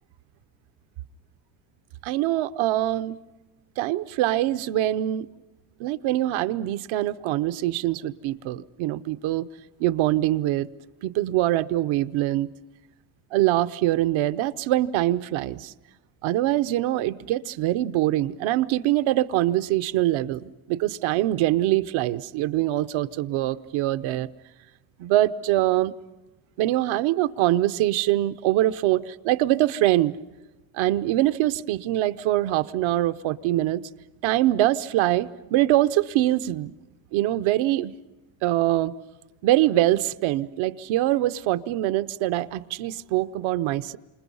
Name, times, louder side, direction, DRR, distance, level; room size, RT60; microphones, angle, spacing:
voice 1, 2.0-3.2 3.8-5.3 5.8-9.5 9.8-10.7 11.0-12.5 13.3-15.7 16.2-24.3 25.0-25.9 26.6-30.1 30.7-33.8 34.2-36.7 37.1-37.9 38.4-38.9 39.4-44.0, right 15 dB, 80° right, 12 dB, 0.9 m, -23 dB
28.5 x 27.0 x 5.5 m, 1.1 s
cardioid pair, 170°, 47 cm